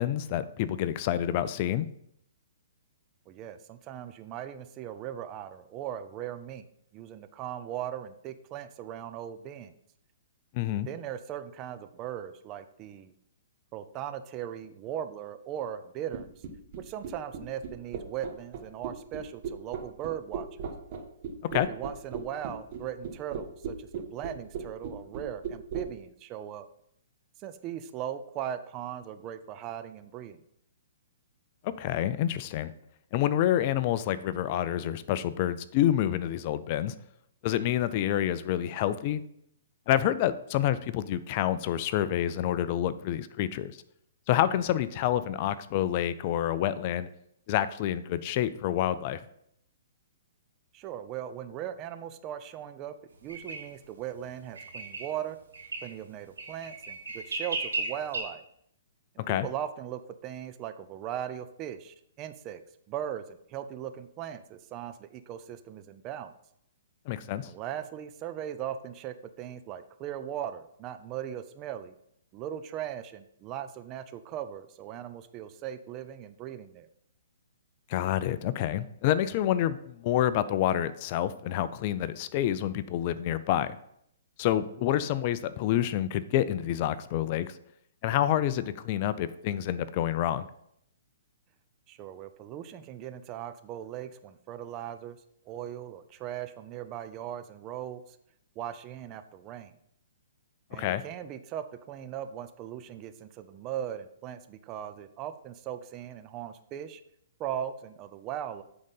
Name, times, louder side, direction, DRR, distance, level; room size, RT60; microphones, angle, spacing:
voice 1, 0.0-1.9 10.5-10.9 21.4-21.7 31.6-32.7 33.1-36.9 37.4-39.2 39.9-43.8 44.3-47.1 47.5-49.2 59.2-59.5 67.1-67.5 77.9-83.8 84.4-87.5 88.0-90.5 100.7-101.0, left 12 dB, 40° left, 15 dB, 0.4 m, -28 dB
voice 2, 3.3-6.6 6.9-9.7 10.9-13.1 13.7-16.3 16.8-20.5 21.5-26.7 27.4-30.4 50.7-52.9 53.2-55.4 55.8-58.4 59.3-62.6 62.9-66.3 67.4-72.0 72.3-76.9 91.9-95.2 95.5-98.0 98.6-99.8 100.7-107.0 107.4-108.6, right 10 dB, 30° right, 10 dB, 0.6 m, -38 dB
sound 1, 16.1-25.9, right 6 dB, 50° right, 1.4 m, -36 dB
sound 2, 53.3-53.6 54.5-55.1 55.5-55.9 56.4-58.2, right 3 dB, 85° right, 3.0 m, -34 dB
8.8 x 3.9 x 5.5 m, 0.72 s
hypercardioid pair, 135°, 0 cm